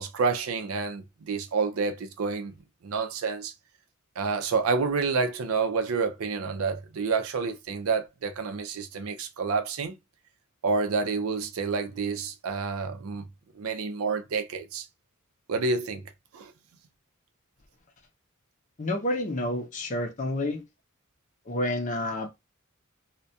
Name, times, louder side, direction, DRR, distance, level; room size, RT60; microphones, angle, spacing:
voice 1, 0.0-2.5 2.8-3.5 4.2-10.0 10.6-13.3 13.5-14.9 15.5-16.0 16.3-16.5, right 4 dB, 80° right, 0.4 m, -29 dB
voice 2, 18.8-20.6 21.5-22.3, left 1 dB, 35° left, 0.6 m, -29 dB
2.3 x 2.1 x 2.5 m
head